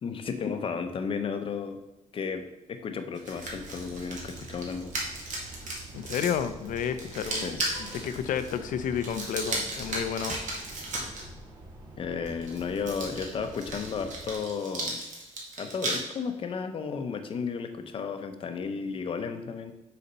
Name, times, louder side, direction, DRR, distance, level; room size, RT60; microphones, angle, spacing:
voice 1, 0.0-1.8 2.1-5.0 7.3-7.6 12.0-15.0 15.6-19.7, left 5 dB, 40° left, 7 dB, 0.6 m, -33 dB
sound 1, 3.1-11.2 12.3-16.0, right 2 dB, 70° right, 1.8 m, -36 dB
sound 2, 3.2-14.5, right 1 dB, 30° right, 2.0 m, -46 dB
voice 2, 5.9-10.4, left 8 dB, 80° left, 11 dB, 0.6 m, -31 dB
6.7 x 4.2 x 5.4 m, 0.95 s
wide cardioid pair, 170°, 13 cm